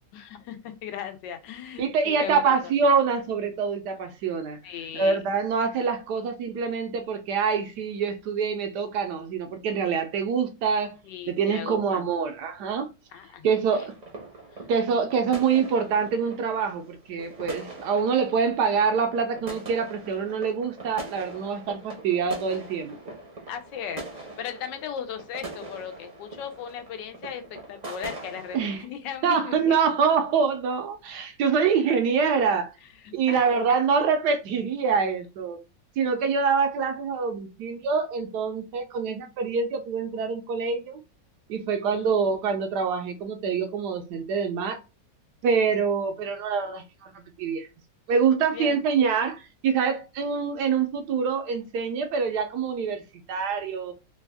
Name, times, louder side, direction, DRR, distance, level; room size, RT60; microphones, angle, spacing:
voice 1, 0.1-2.6 4.6-5.2 11.0-12.0 13.1-13.5 14.5-14.6 23.5-29.7 33.0-33.4 41.8-42.1 48.5-48.8, left 8 dB, 80° left, 1.2 m, -37 dB
voice 2, 1.8-4.6 4.9-11.0 11.3-12.9 13.4-13.9 14.7-23.0 28.5-28.8 29.2-32.7 33.1-35.6 36.0-41.0 41.5-44.8 45.4-47.1 47.4-47.7 48.1-53.0 53.3-53.9, right 6 dB, 75° right, 1.1 m, -25 dB
sound 1, 13.7-28.8, right 2 dB, 35° right, 0.7 m, -42 dB
3.4 x 2.2 x 3.4 m
omnidirectional pair, 2.0 m